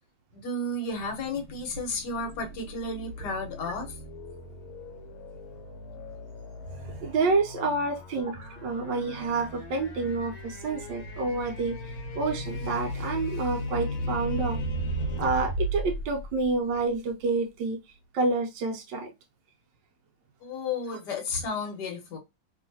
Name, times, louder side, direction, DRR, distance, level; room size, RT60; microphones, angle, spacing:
voice 1, 0.3-3.9 20.4-22.2, left 2 dB, 60° left, 1.4 m, -33 dB
sound 1, 0.9-17.1, equal, 80° left, 1.6 m, -36 dB
voice 2, 6.7-14.6 15.2-17.8 18.1-19.1, right 3 dB, 70° right, 1.1 m, -28 dB
3.1 x 2.9 x 2.6 m
omnidirectional pair, 2.3 m